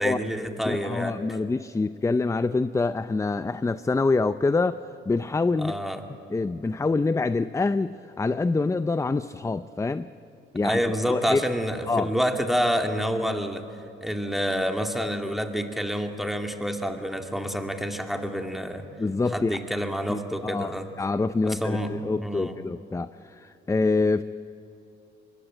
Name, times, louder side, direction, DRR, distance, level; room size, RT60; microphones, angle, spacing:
voice 1, 0.0-1.2 5.6-6.0 10.6-13.6 14.0-18.9 19.3-20.9 21.4-22.6, equal, ahead, 4 dB, 2.4 m, -28 dB
voice 2, 0.7-5.8 6.3-10.1 10.5-10.8 11.1-11.4 11.9-12.1 19.0-19.6 20.1-24.2, left 3 dB, 15° left, 13 dB, 0.5 m, -26 dB
25.0 x 21.5 x 9.0 m, 2.8 s
cardioid pair, 90°, 20 cm